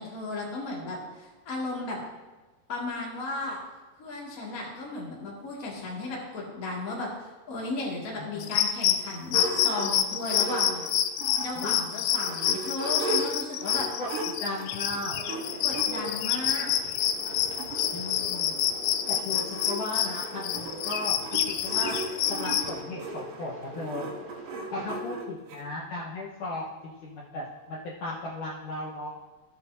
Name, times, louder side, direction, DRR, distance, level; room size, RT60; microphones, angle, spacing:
voice 1, 0.0-2.0 2.7-3.6 4.0-10.8 11.4-13.9 15.6-16.7, left 2 dB, 30° left, -4 dB, 1.6 m, -35 dB
voice 2, 8.2-8.6 11.5-11.8 14.0-14.1 14.4-15.2 17.9-18.6 19.1-22.0 22.3-24.1 24.7-29.2, left 2 dB, 65° left, -6 dB, 2.2 m, -36 dB
sound 1, 8.4-22.7, left 10 dB, 90° left, 2.0 m, -28 dB
sound 2, 9.3-11.6 12.0-15.9 16.7-16.8 17.1-17.2 17.3-25.6, right 3 dB, 65° right, 2.3 m, -37 dB
sound 3, 15.1-25.0, right 1 dB, 40° right, 1.3 m, -43 dB
15.0 x 7.4 x 2.7 m, 1.2 s
omnidirectional pair, 4.8 m